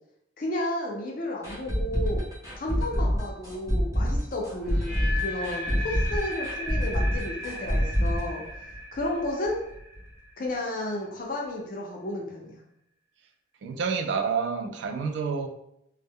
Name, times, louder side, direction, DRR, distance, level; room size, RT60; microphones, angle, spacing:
voice 1, 0.4-2.2 2.5-8.4 8.9-9.6 10.4-12.6, left 1 dB, 45° left, -1 dB, 0.4 m, -32 dB
sound 1, 1.4-9.2 9.4-9.5 9.9-10.0, equal, 15° right, 0.6 m, -27 dB
sound 2, 4.6-10.6, left 1 dB, 45° right, 1.0 m, -37 dB
voice 2, 13.6-15.5, right 5 dB, 65° right, 5 dB, 0.3 m, -28 dB
2.1 x 2.0 x 3.5 m, 0.79 s
head